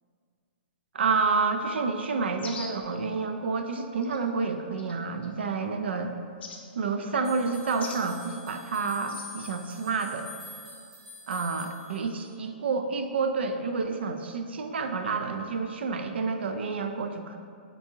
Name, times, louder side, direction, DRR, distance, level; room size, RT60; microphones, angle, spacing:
voice 1, 0.9-6.1 6.7-10.3 11.3-17.4, right 4 dB, 80° right, 6 dB, 0.3 m, -29 dB
sound 1, 2.4-2.9 4.0-4.2 4.8-5.3 6.4-6.6 7.8-8.0 9.1-9.3, left 4 dB, 75° left, 0.5 m, -41 dB
sound 2, 7.2-12.5, left 2 dB, 5° right, 0.4 m, -47 dB
4.5 x 2.6 x 2.7 m, 2.3 s
hypercardioid pair, 170°, 6 cm